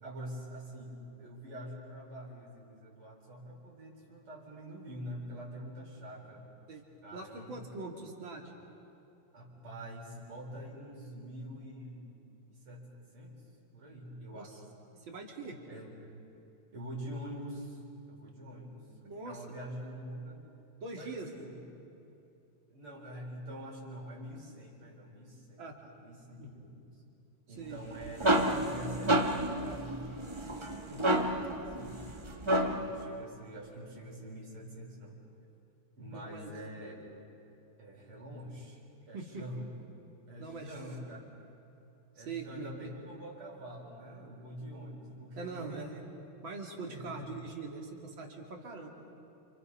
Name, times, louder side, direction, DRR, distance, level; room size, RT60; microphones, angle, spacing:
voice 1, 0.0-6.5 7.0-7.6 9.3-12.1 12.5-12.9 13.1-13.3 13.7-14.6 15.7-16.0 16.7-17.8 18.1-18.8 19.3-20.4 20.9-21.6 22.7-25.6 26.0-26.9 27.5-30.6 31.5-35.2 36.0-37.0 37.8-38.8 39.1-39.7 40.3-41.2 42.2-46.1 46.9-47.3, equal, 80° right, -3 dB, 5.3 m, -45 dB
voice 2, 7.1-8.5 14.3-14.6 14.9-15.6 19.0-19.5 20.8-21.3 25.6-25.9 26.4-26.6 27.6-27.9 30.8-31.4 36.1-36.5 39.1-39.4 40.4-40.8 42.2-42.9 45.4-45.9 46.4-48.9, right 3 dB, 60° right, 1 dB, 3.3 m, -43 dB
sound 1, 27.8-33.0, right 1 dB, 15° right, 1.1 m, -30 dB
29.5 x 28.0 x 5.6 m, 2.9 s
omnidirectional pair, 2.4 m